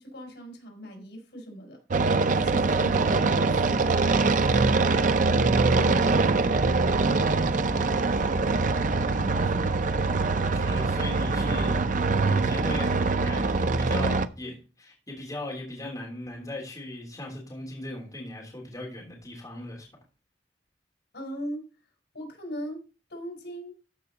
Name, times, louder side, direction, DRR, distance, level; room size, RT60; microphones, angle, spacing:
voice 1, 0.0-1.8 2.3-3.9 21.1-21.6 22.1-22.8 23.1-23.7, equal, 75° left, 2 dB, 4.5 m, -39 dB
sound 1, 1.9-14.3, right 3 dB, 45° right, 0.6 m, -23 dB
voice 2, 5.9-6.2 8.1-8.2 9.4-9.5 10.4-11.8 12.3-19.9, left 1 dB, 20° left, -2 dB, 3.1 m, -38 dB
sound 2, 6.5-11.9, equal, 15° right, 2.0 m, -41 dB
14.0 x 5.5 x 3.9 m, 0.34 s
head